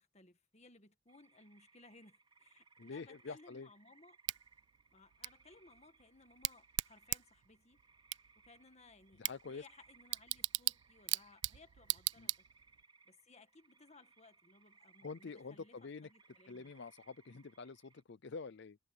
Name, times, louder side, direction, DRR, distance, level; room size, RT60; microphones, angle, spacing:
voice 1, 0.0-4.2 4.9-7.8 8.4-9.2 9.5-12.3 13.1-16.7, left 3 dB, 30° left, 1.8 m, -62 dB
sound 1, 1.1-18.0, right 4 dB, 25° right, 3.8 m, -67 dB
voice 2, 2.8-3.7 9.2-9.7 12.2-12.3 15.0-16.1 16.5-18.8, left 4 dB, 55° left, 0.6 m, -47 dB
Bicycle / Tick, 4.3-12.8, right 18 dB, 55° right, 0.3 m, -41 dB
head